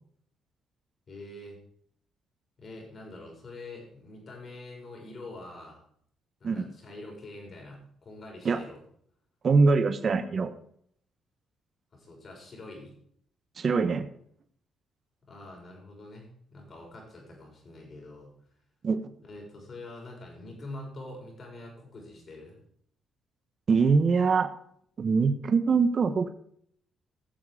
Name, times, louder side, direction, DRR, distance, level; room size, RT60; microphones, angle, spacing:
voice 1, 1.1-1.6 2.6-5.8 6.4-8.8 11.9-12.9 15.3-18.3 19.2-22.6, left 2 dB, 45° left, 0 dB, 6.1 m, -45 dB
voice 2, 9.4-10.5 13.6-14.1 18.8-19.0 23.7-24.5 25.0-26.3, right 4 dB, 45° right, 9 dB, 1.1 m, -23 dB
16.5 x 7.3 x 4.9 m, 0.64 s
cardioid pair, 90°, 0 cm